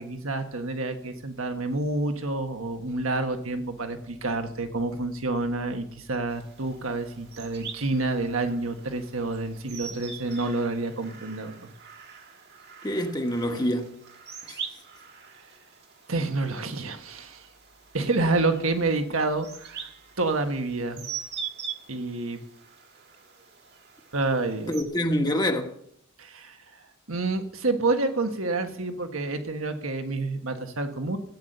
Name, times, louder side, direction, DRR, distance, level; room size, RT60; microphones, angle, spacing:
voice 1, 0.0-11.7 16.1-17.4 17.9-19.9 20.2-21.1 21.9-22.4 24.1-24.8 26.2-26.6 27.1-31.2, right 2 dB, 80° right, 1.5 m, -28 dB
sound 1, 6.3-24.8, right 7 dB, 55° right, 1.8 m, -43 dB
voice 2, 12.8-14.0 14.5-14.6 24.7-25.8, equal, 20° left, 1.3 m, -26 dB
15.5 x 9.5 x 6.7 m
head